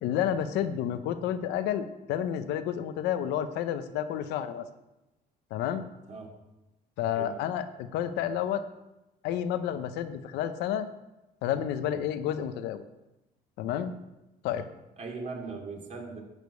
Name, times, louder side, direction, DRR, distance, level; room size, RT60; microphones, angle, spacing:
voice 1, 0.0-4.7 5.5-5.9 7.0-8.6 9.2-10.9 11.4-12.8 13.6-13.9 14.4-14.7, left 10 dB, 90° left, 10 dB, 0.8 m, -30 dB
voice 2, 15.0-16.2, right 4 dB, 45° right, 0 dB, 2.6 m, -39 dB
11.0 x 5.1 x 8.2 m, 0.95 s
cardioid pair, 110°, 17 cm